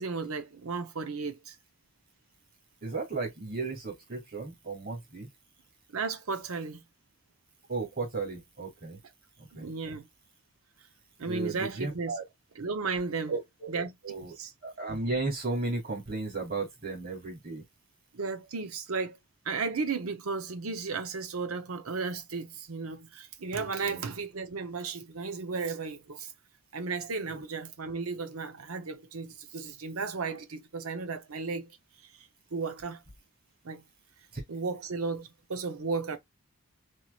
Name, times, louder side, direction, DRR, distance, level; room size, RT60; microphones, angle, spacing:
voice 1, 0.0-1.5 5.9-6.8 9.5-10.1 11.2-12.1 12.6-13.4 13.7-13.9 14.4-14.5 18.1-19.2 19.4-26.3 26.7-31.7 32.5-33.0 33.6-33.8 34.5-36.2, right 4 dB, 85° right, 0.8 m, -34 dB
voice 2, 2.8-5.3 7.7-9.0 9.5-9.7 11.3-12.2 13.3-14.3 14.6-17.6 23.8-24.0 34.3-34.4, right 3 dB, 45° right, 2.2 m, -34 dB
4.6 x 2.9 x 2.3 m
head